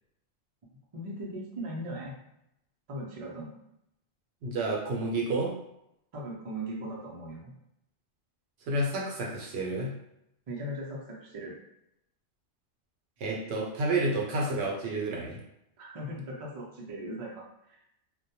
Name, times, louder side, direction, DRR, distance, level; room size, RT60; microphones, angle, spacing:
voice 1, 0.9-2.2 2.9-3.5 6.1-7.5 10.5-11.5 15.8-17.4, right 1 dB, 45° right, -3 dB, 0.4 m, -38 dB
voice 2, 4.4-5.5 8.7-9.9 13.2-15.4, right 2 dB, 75° right, -1 dB, 0.8 m, -30 dB
2.2 x 2.1 x 2.7 m, 0.81 s
omnidirectional pair, 1.2 m